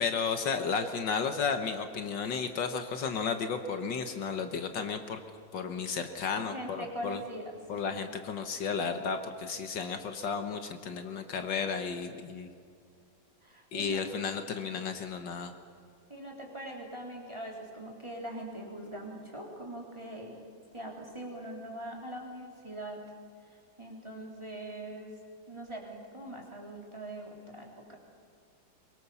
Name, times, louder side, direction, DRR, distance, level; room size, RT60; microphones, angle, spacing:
voice 1, 0.0-5.2 5.5-7.2 7.7-12.5 13.7-15.5, left 5 dB, 70° left, 7 dB, 1.9 m, -33 dB
voice 2, 6.4-8.0 13.4-14.0 16.1-20.4 20.7-23.0 23.5-25.2 25.5-28.0, right 1 dB, 15° right, -1 dB, 3.7 m, -42 dB
23.5 x 22.5 x 7.1 m, 2.3 s
omnidirectional pair, 2.1 m